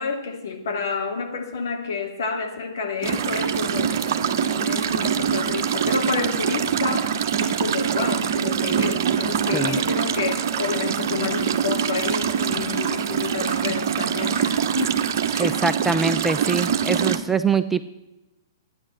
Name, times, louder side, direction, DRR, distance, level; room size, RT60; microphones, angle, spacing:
voice 1, 0.0-4.1 4.4-7.1 7.4-15.0 15.3-15.6, left 5 dB, 65° left, 3 dB, 2.7 m, -29 dB
sound 1, 3.0-17.2, right 8 dB, 55° right, 1.0 m, -24 dB
voice 2, 15.4-17.9, right 4 dB, 10° right, 10 dB, 0.5 m, -23 dB
13.0 x 9.8 x 7.7 m, 0.98 s
figure-of-eight pair, 115°, 2 cm